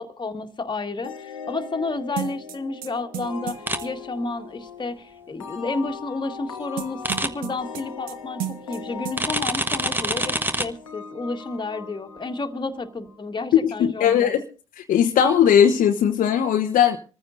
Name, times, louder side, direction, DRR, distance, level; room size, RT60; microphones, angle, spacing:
voice 1, 0.0-14.3, left 3 dB, 30° left, 1.9 m, -31 dB
sound 1, 1.0-13.4, left 5 dB, 85° left, 1.1 m, -40 dB
sound 2, 2.2-3.9 6.8-8.1 8.4-8.8 9.0-9.2, right 12 dB, 60° right, 1.1 m, -33 dB
sound 3, 3.7-3.8 7.0-7.3 9.2-10.7, right 1 dB, 10° right, 1.3 m, -25 dB
voice 2, 13.6-14.4 14.8-17.0, left 8 dB, 55° left, 1.1 m, -19 dB
26.0 x 15.0 x 2.6 m
figure-of-eight pair, 45°, 16 cm